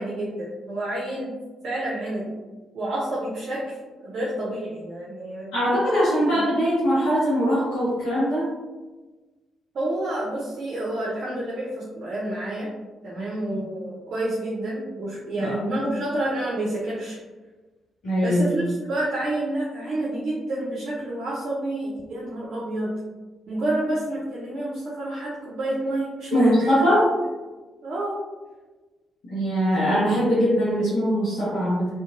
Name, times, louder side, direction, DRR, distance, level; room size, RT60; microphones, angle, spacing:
voice 1, 0.0-1.3 1.6-2.3 2.7-5.5 6.3-6.4 9.7-12.7 13.0-17.2 18.2-22.9 23.5-26.8 27.8-28.2, right 1 dB, 55° right, -6 dB, 0.6 m, -29 dB
voice 2, 5.5-8.5 15.3-15.7 18.0-18.5 26.3-27.1 29.3-31.9, equal, 70° left, -11 dB, 0.9 m, -21 dB
2.8 x 2.4 x 2.5 m, 1.2 s
figure-of-eight pair, 40°, 0 cm